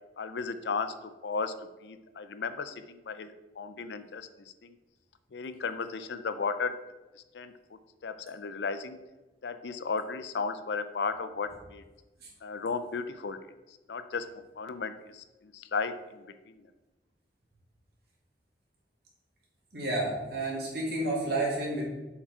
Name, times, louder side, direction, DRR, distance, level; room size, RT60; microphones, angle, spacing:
voice 1, 0.2-1.5 1.8-4.3 4.6-4.7 5.3-6.8 7.3-7.5 8.0-9.0 9.4-11.8 12.4-13.4 13.9-14.3 14.6-16.6, left 4 dB, 75° left, 11 dB, 0.5 m, -35 dB
voice 2, 19.7-21.8, right 2 dB, 60° right, -4 dB, 2.4 m, -30 dB
7.2 x 4.6 x 4.5 m, 1.1 s
head